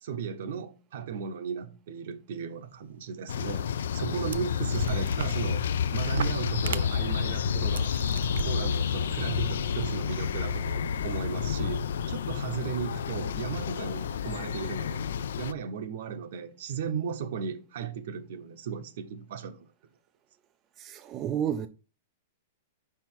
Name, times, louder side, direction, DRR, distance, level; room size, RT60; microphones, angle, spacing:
voice 1, 0.0-3.7 3.9-5.7 5.9-7.9 8.4-15.1 15.4-19.6, right 7 dB, 60° right, 0.9 m, -35 dB
sound 1, 3.2-3.3 4.0-4.1 4.3-5.7 6.1-7.3 7.8-8.5, right 7 dB, 90° right, 0.4 m, -36 dB
sound 2, 3.3-15.5, left 7 dB, 85° left, 0.4 m, -30 dB
voice 2, 20.8-21.7, right 9 dB, 25° right, 0.3 m, -31 dB
5.8 x 4.5 x 4.5 m
supercardioid pair, 165°, 0 cm